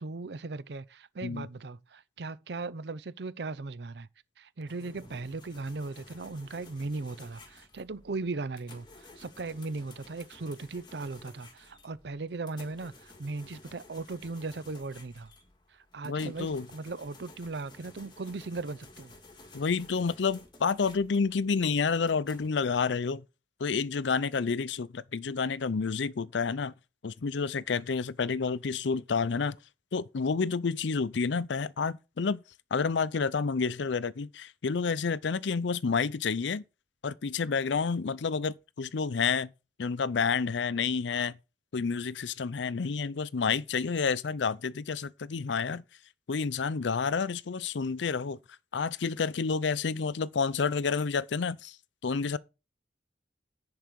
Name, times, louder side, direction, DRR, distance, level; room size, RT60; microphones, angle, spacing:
voice 1, 0.0-4.1 4.4-15.3 15.7-19.1, right 3 dB, 65° right, 0.6 m, -38 dB
sound 1, 4.7-22.5, left 2 dB, 25° left, 1.9 m, -54 dB
voice 2, 16.0-16.7 19.5-23.2 23.6-26.7 27.0-29.6 29.9-32.4 32.7-36.6 37.0-39.5 39.8-41.4 41.7-45.8 46.3-48.4 48.7-51.8 52.0-52.4, left 5 dB, 80° left, 0.5 m, -29 dB
10.5 x 4.8 x 6.2 m
head